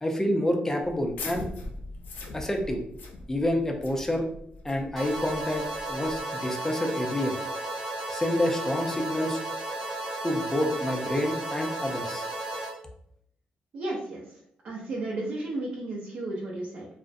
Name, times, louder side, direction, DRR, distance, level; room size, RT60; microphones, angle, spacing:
voice 1, 0.0-1.5 2.3-2.8 3.3-4.3 4.6-7.3 8.1-9.4 10.2-12.3, left 1 dB, 15° left, 3 dB, 0.4 m, -28 dB
sound 1, 0.8-6.2, left 2 dB, 85° left, 0.4 m, -41 dB
sound 2, 5.0-12.7, right 2 dB, 15° right, 0.7 m, -34 dB
voice 2, 13.7-14.3 14.6-16.9, right 2 dB, 60° right, -5 dB, 0.6 m, -33 dB
2.4 x 2.0 x 2.5 m, 0.68 s
cardioid pair, 100°, 3 cm